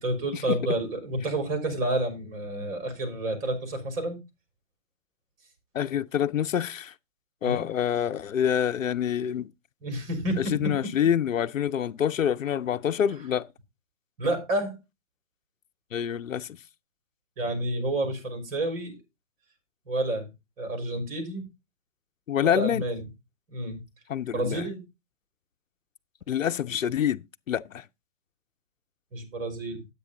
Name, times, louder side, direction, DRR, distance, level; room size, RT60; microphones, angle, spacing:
voice 1, 0.0-4.2 7.4-7.6 9.8-10.7 14.2-14.8 17.4-19.0 19.9-20.3 20.6-21.5 22.4-23.0 23.5-23.8 24.3-24.8 29.1-29.8, right 1 dB, 45° right, 4.5 m, -29 dB
voice 2, 5.7-6.9 7.4-9.5 10.4-13.5 15.9-16.6 22.3-22.8 24.1-24.6 26.3-27.8, left 9 dB, 85° left, 0.7 m, -26 dB
9.3 x 8.2 x 3.8 m
hypercardioid pair, 140°, 38 cm